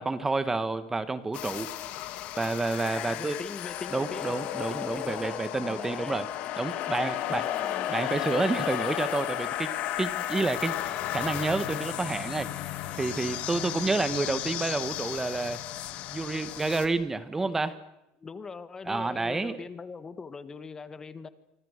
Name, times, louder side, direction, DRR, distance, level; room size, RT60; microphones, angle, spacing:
voice 1, 0.0-1.7 2.4-3.3 3.9-6.2 6.6-7.5 7.9-10.8 11.1-12.7 13.0-15.6 16.1-17.8 18.8-19.6, right 3 dB, 15° right, 13 dB, 1.7 m, -29 dB
sound 1, 1.3-16.9, left 13 dB, 60° left, 2.8 m, -34 dB
voice 2, 3.0-6.3 7.3-7.9 18.2-21.3, left 5 dB, 25° left, 13 dB, 1.7 m, -41 dB
26.5 x 25.5 x 6.8 m, 0.89 s
supercardioid pair, 105°, 3 cm